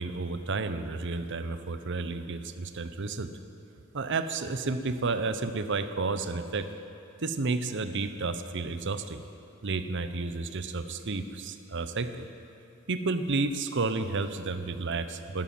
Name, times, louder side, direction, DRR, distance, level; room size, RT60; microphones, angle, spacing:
voice 1, 0.0-3.3 3.9-6.7 7.2-9.2 9.6-12.3 12.9-15.4, right 3 dB, 55° right, 10 dB, 0.8 m, -31 dB
12.5 x 12.5 x 7.7 m, 2.8 s
head